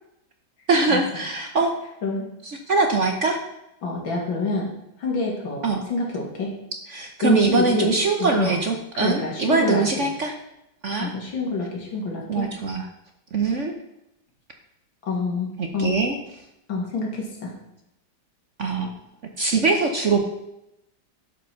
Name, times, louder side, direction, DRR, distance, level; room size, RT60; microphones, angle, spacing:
voice 1, 0.7-1.7 2.5-3.4 5.6-5.8 6.9-10.3 10.8-11.1 12.3-12.9 13.3-13.7 15.6-16.2 18.6-18.9 19.4-20.2, right 4 dB, 50° right, 4 dB, 1.0 m, -22 dB
voice 2, 3.8-4.7 5.0-6.5 7.2-7.9 8.2-8.6 8.9-10.0 11.0-12.5 15.0-16.0 16.7-17.5, left 3 dB, 80° left, -2 dB, 3.1 m, -27 dB
11.5 x 5.3 x 6.0 m, 0.86 s
omnidirectional pair, 2.1 m